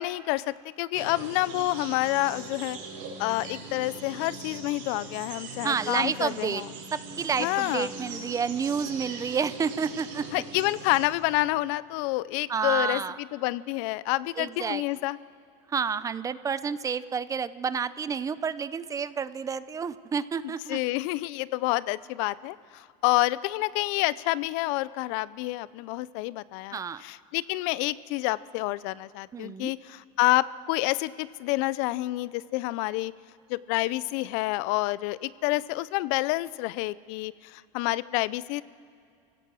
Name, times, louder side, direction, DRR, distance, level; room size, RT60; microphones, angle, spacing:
voice 1, 0.0-2.8 3.2-6.7 7.4-7.9 10.3-15.2 20.7-33.1 33.5-38.6, left 19 dB, 70° left, 19 dB, 0.5 m, -28 dB
sound 1, 0.9-11.1, right 3 dB, 85° right, 5.2 m, -41 dB
voice 2, 5.6-6.6 6.9-10.4 12.5-13.2 14.4-14.8 15.7-20.8 26.7-27.0 29.3-29.7, right 6 dB, 20° right, 16 dB, 0.5 m, -30 dB
29.0 x 16.5 x 6.2 m, 2.4 s
supercardioid pair, 135°, 16 cm